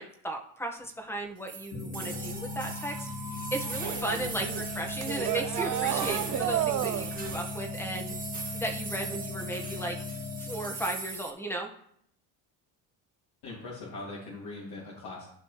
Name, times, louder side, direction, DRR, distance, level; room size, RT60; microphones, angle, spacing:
voice 1, 0.0-8.1 8.5-10.0 10.4-11.7, right 1 dB, 5° left, 2 dB, 1.7 m, -36 dB
sound 1, 1.5-11.3, right 4 dB, 20° right, 1.7 m, -40 dB
sound 2, 1.7-11.0, left 3 dB, 80° left, 2.9 m, -38 dB
sound 3, 3.8-7.4, right 11 dB, 50° right, 0.7 m, -31 dB
voice 2, 13.4-15.3, left 2 dB, 60° left, -6 dB, 2.8 m, -41 dB
14.5 x 5.3 x 3.3 m, 0.68 s
supercardioid pair, 100°, 42 cm